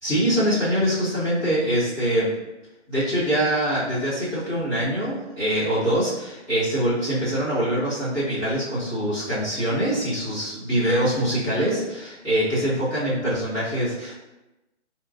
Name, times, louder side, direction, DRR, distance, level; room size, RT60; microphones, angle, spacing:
voice 1, 0.0-2.3 2.9-14.2, equal, 10° right, -14 dB, 1.3 m, -24 dB
4.2 x 3.1 x 2.5 m, 1.0 s
hypercardioid pair, 165°, 35 cm